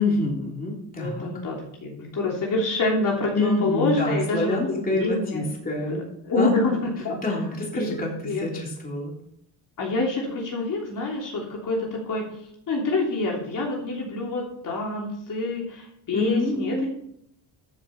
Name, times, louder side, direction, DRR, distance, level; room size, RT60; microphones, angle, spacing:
voice 1, 0.0-1.3 3.3-6.0 6.3-6.8 7.2-9.1 16.1-16.9, left 2 dB, 20° left, -2 dB, 3.1 m, -27 dB
voice 2, 1.0-5.5 5.9-6.0 6.2-7.3 7.7-8.0 8.2-8.4 9.8-12.3 12.7-16.9, left 2 dB, 45° left, -2 dB, 3.1 m, -27 dB
13.5 x 7.2 x 4.2 m, 0.72 s
cardioid pair, 135°, 44 cm